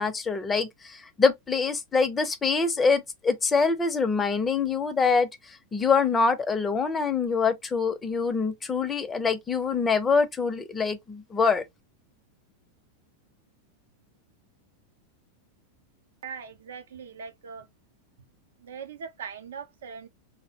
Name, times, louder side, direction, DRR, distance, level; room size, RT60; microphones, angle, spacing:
voice 1, 0.0-11.6, left 5 dB, 20° left, 0.5 m, -25 dB
voice 2, 16.2-17.7 18.6-20.1, right 6 dB, 80° right, 0.5 m, -40 dB
2.4 x 2.0 x 2.7 m
hypercardioid pair, 110°, 0 cm